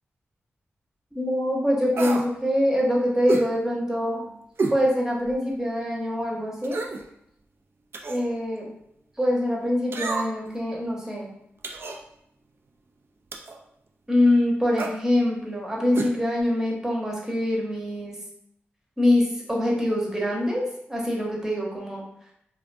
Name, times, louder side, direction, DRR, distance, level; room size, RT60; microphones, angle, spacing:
voice 1, 1.1-4.3 4.7-6.8 8.1-8.7 9.2-11.3 14.1-18.2 19.0-22.0, left 1 dB, 10° right, -3 dB, 0.9 m, -24 dB
sound 1, 1.9-2.3 3.3-3.5 4.6-4.8 5.3-5.4 6.6-7.0 7.9-8.3 9.9-10.5 11.6-12.0 13.3-13.6 14.7-15.0 15.9-16.1 16.4-16.5, right 3 dB, 55° right, 0.3 m, -29 dB
2.4 x 2.2 x 2.5 m, 0.75 s
cardioid pair, 45°, 5 cm